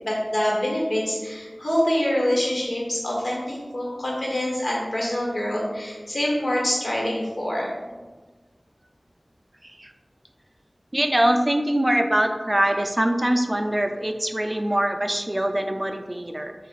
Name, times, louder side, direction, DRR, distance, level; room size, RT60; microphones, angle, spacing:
voice 1, 0.0-7.7, left 1 dB, 70° left, -4 dB, 1.2 m, -25 dB
voice 2, 10.9-16.5, right 1 dB, 25° right, 6 dB, 0.3 m, -23 dB
6.9 x 2.4 x 2.4 m, 1.3 s
wide cardioid pair, 50°, 0 cm